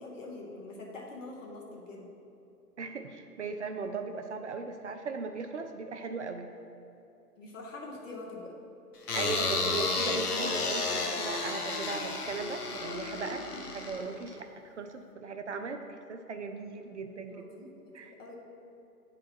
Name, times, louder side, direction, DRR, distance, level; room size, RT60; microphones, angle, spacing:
voice 1, 0.0-2.1 7.4-8.5 13.4-13.7 17.3-18.4, left 2 dB, 55° left, -1 dB, 1.5 m, -45 dB
voice 2, 2.8-6.5 9.1-17.5 17.9-18.2, right 4 dB, 50° right, 6 dB, 0.5 m, -38 dB
sound 1, 9.1-14.4, left 3 dB, 70° left, 1.0 m, -32 dB
9.4 x 3.9 x 4.4 m, 2.8 s
figure-of-eight pair, 130°, 47 cm